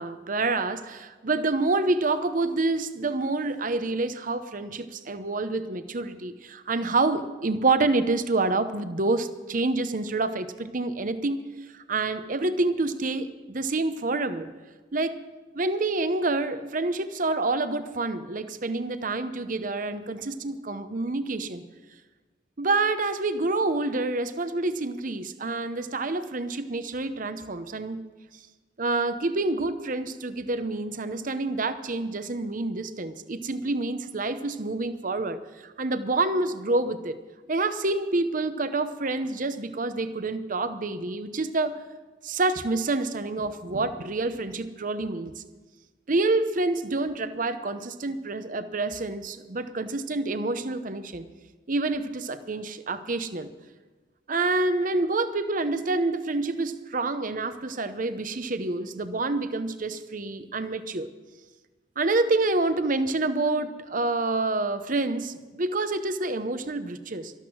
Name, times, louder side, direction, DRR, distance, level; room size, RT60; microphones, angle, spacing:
voice 1, 0.0-11.5 11.7-14.5 14.9-15.2 15.5-21.6 22.6-28.0 28.8-37.2 37.5-41.8 42.2-45.4 46.1-51.2 51.7-53.5 54.3-61.1 62.0-67.3, right 3 dB, 45° right, 11 dB, 0.8 m, -27 dB
13.0 x 12.5 x 6.2 m, 1.3 s
head